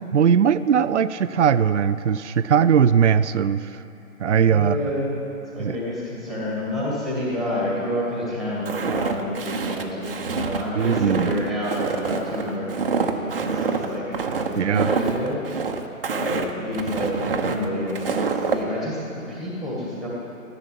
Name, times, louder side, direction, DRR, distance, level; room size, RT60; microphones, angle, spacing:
voice 1, 0.1-3.7 4.2-4.8 5.6-5.8 10.7-11.3 14.6-14.9, right 7 dB, 55° right, 14 dB, 0.5 m, -19 dB
voice 2, 4.5-5.1 5.5-14.1 14.5-15.4 16.1-20.1, left 1 dB, ahead, -5 dB, 1.9 m, -29 dB
Walk footsteps, 8.7-18.6, right 5 dB, 40° right, 1.1 m, -27 dB
14.5 x 11.0 x 9.1 m, 2.9 s
hypercardioid pair, 160°, 43 cm